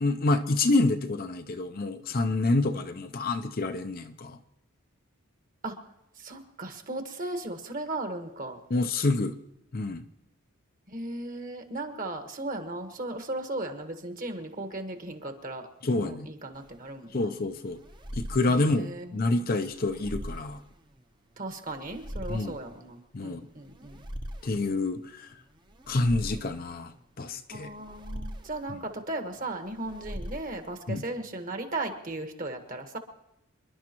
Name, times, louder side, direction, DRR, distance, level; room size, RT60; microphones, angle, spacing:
voice 1, 0.0-4.4 8.7-9.4 9.7-10.0 15.8-16.3 17.1-17.8 18.1-20.6 22.3-22.5 23.1-23.5 24.4-25.3 25.9-27.7 30.9-31.0, left 2 dB, 40° left, 7 dB, 0.6 m, -27 dB
voice 2, 6.1-8.6 10.9-15.7 15.9-17.3 18.5-19.5 21.4-24.0 27.5-33.0, right 2 dB, 40° right, 5 dB, 1.5 m, -36 dB
sound 1, 16.5-31.0, equal, 20° right, 0.9 m, -43 dB
27.5 x 11.5 x 3.0 m, 0.86 s
head